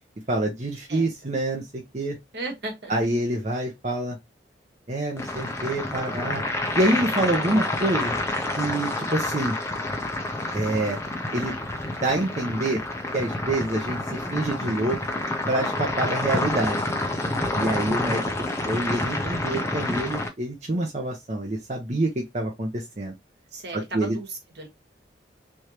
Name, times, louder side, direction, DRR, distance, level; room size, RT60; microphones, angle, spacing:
voice 1, 0.3-2.2 2.9-4.2 4.9-6.4 6.7-8.1 8.6-9.6 10.5-11.0 11.3-11.6 12.0-12.8 13.1-15.0 15.5-16.8 17.5-18.3 18.6-23.1 23.7-24.2, right 1 dB, 40° right, 0.8 m, -26 dB
voice 2, 2.3-2.9 23.5-24.7, right 2 dB, 65° right, 1.5 m, -35 dB
sound 1, 5.2-20.3, left 2 dB, 15° left, 0.6 m, -28 dB
3.5 x 3.2 x 3.0 m
head